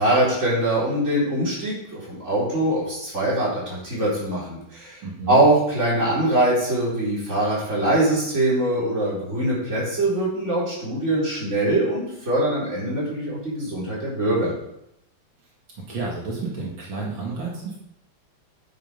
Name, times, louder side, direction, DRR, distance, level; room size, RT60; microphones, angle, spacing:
voice 1, 0.0-5.0 5.3-14.5, right 1 dB, 35° right, -7 dB, 4.9 m, -23 dB
voice 2, 5.0-5.4 15.9-17.8, right 3 dB, 80° right, -4 dB, 3.0 m, -30 dB
9.1 x 8.1 x 5.4 m, 0.81 s
omnidirectional pair, 2.1 m